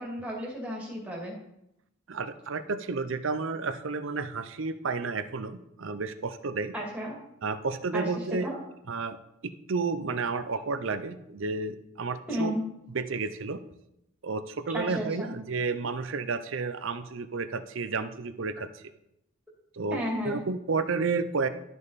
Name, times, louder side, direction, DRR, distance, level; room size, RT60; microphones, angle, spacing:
voice 1, 0.0-1.3 6.7-7.2 7.9-8.6 12.3-12.6 14.7-15.3 18.5-18.6 19.9-20.4, equal, 5° right, -4 dB, 2.2 m, -33 dB
voice 2, 2.1-6.7 7.4-8.5 8.9-9.2 9.7-12.5 12.9-13.6 14.2-18.8 19.7-21.5, right 4 dB, 65° right, 11 dB, 0.6 m, -31 dB
12.5 x 5.4 x 4.1 m, 0.83 s
head